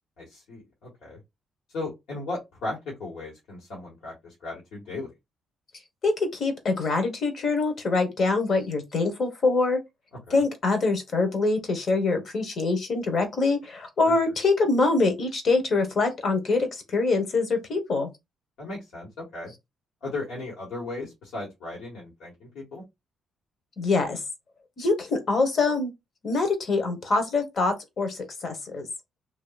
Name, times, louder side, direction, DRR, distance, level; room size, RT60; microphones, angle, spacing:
voice 1, 0.2-1.2 1.7-5.1 10.3-10.4 14.0-14.1 18.6-19.5 20.0-22.8, left 2 dB, 80° left, 1.7 m, -36 dB
voice 2, 6.0-9.8 10.3-18.1 23.8-24.2 24.8-25.9 26.2-28.9, left 3 dB, 50° left, 1.2 m, -24 dB
2.9 x 2.9 x 2.4 m
cardioid pair, 90°, 0 cm